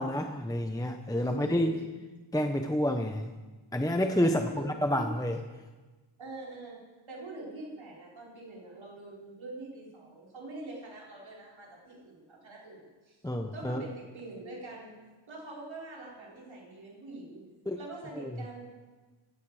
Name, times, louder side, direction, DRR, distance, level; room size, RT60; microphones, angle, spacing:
voice 1, 0.0-1.7 2.3-3.3 3.7-5.4 13.2-13.8 17.7-17.8 18.2-18.3, equal, 10° left, 5 dB, 0.8 m, -29 dB
voice 2, 1.1-1.8 4.2-5.3 6.2-13.2 13.5-14.9 15.3-17.4 17.8-18.7, right 2 dB, 75° right, -4 dB, 4.7 m, -44 dB
18.0 x 15.0 x 4.9 m, 1.3 s
wide cardioid pair, 125°, 47 cm